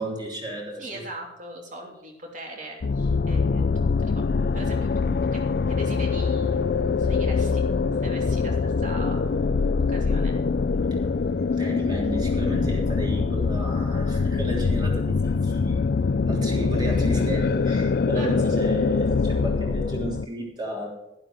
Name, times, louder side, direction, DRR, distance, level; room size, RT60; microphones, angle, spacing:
voice 1, 0.0-1.0 10.9-11.0 11.5-15.8 16.2-20.9, right 1 dB, 25° right, -1 dB, 3.5 m, -32 dB
voice 2, 0.8-4.2 4.5-4.9 5.3-6.6 7.0-7.6 8.0-9.3 9.9-10.4 18.1-18.3, right 1 dB, 45° right, 1 dB, 3.2 m, -40 dB
sound 1, 2.8-20.3, left 4 dB, 55° left, 0.4 m, -24 dB
11.5 x 11.5 x 4.9 m, 0.93 s
head